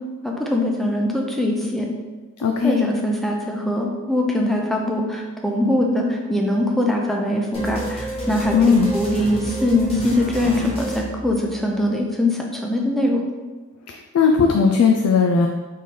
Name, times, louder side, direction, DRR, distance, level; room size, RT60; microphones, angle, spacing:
voice 1, 0.2-1.9 2.6-13.2, left 1 dB, ahead, 0 dB, 0.5 m, -22 dB
voice 2, 2.4-2.8 8.5-8.9 13.9-15.5, left 5 dB, 80° left, 3 dB, 0.4 m, -17 dB
sound 1, 7.5-11.8, right 1 dB, 30° left, 1.0 m, -31 dB
3.7 x 3.1 x 4.2 m, 1.3 s
head